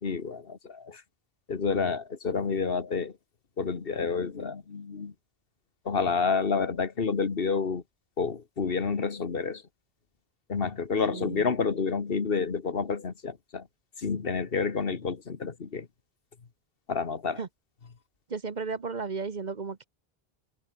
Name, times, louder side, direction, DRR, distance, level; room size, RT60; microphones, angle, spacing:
voice 1, 0.0-1.0 1.5-3.2 3.6-5.1 5.8-7.8 8.2-9.6 10.5-13.7 14.0-15.9 16.9-17.4, left 5 dB, 65° left, 1.6 m, -29 dB
voice 2, 11.1-11.4 17.4-17.5 18.3-19.8, right 4 dB, 45° right, 1.1 m, -34 dB
omnidirectional pair, 1.0 m